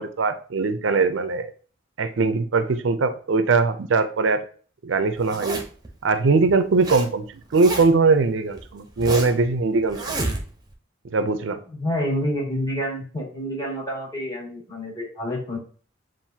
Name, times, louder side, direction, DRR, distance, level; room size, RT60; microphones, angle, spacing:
voice 1, 0.0-1.5 2.0-4.4 4.8-5.6 6.0-7.2 7.5-10.2 11.1-11.6, right 4 dB, 90° right, 10 dB, 0.5 m, -21 dB
Zipper (clothing), 5.2-5.9 6.5-7.1 7.3-8.1 8.6-9.4 9.9-10.7, right 2 dB, 20° right, 0.8 m, -30 dB
voice 2, 11.7-15.6, equal, 20° left, -5 dB, 2.0 m, -28 dB
7.3 x 2.6 x 2.7 m, 0.42 s
head